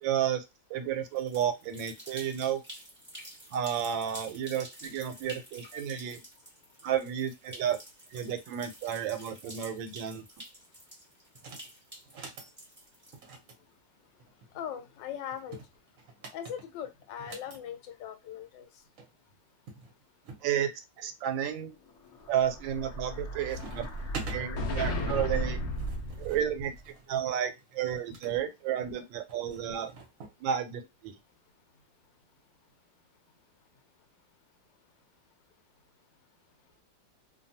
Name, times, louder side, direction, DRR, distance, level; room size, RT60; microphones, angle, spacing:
voice 1, 0.0-0.4 0.7-2.6 3.5-6.2 6.8-7.8 8.1-10.2 20.4-20.7 21.0-21.8 22.3-23.8 24.3-25.6 26.2-26.7 27.1-29.9 30.4-31.2, right 9 dB, 90° right, 1.3 m, -32 dB
sound 1, 1.0-13.5, right 1 dB, 10° right, 0.8 m, -49 dB
sound 2, 11.3-11.7 12.0-12.5 13.1-14.5 15.3-17.6 18.7-18.8 19.0-19.1 19.7-20.5 21.0-21.5 22.1-22.5 22.8-23.2 23.5-24.4 25.4-28.4 29.3-30.4, right 4 dB, 55° right, 1.1 m, -46 dB
voice 2, 14.5-15.6 16.3-18.7, left 9 dB, 80° left, 1.3 m, -40 dB
Explosion, 22.1-26.8, equal, 65° left, 0.7 m, -34 dB
2.9 x 2.2 x 2.6 m
omnidirectional pair, 2.0 m